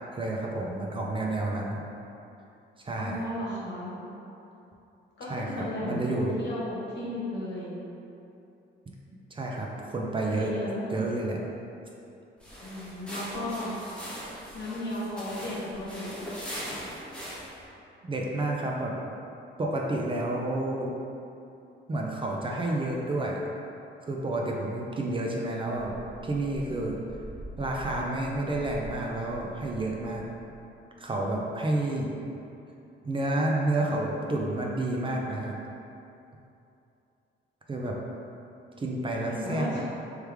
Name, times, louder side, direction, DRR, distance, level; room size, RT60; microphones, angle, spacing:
voice 1, 0.1-1.8 2.8-3.2 5.3-6.3 8.9-9.0 9.3-9.7 9.9-10.5 10.9-11.4 18.0-18.9 19.6-20.9 21.9-23.4 24.1-25.9 26.2-27.0 27.6-30.2 31.0-32.1 33.0-35.6 37.7-38.0 38.8-39.8, right 2 dB, 25° right, -2 dB, 0.5 m, -30 dB
voice 2, 3.0-4.0 5.2-7.8 10.2-10.9 12.6-13.7 14.5-16.2 39.3-39.8, left 1 dB, 60° left, -6 dB, 1.1 m, -35 dB
sound 1, 12.4-17.6, equal, 5° left, 1.1 m, -40 dB
sound 2, 25.7-30.8, equal, 50° right, 1.0 m, -45 dB
3.3 x 3.2 x 3.4 m, 2.8 s
cardioid pair, 90°, 20 cm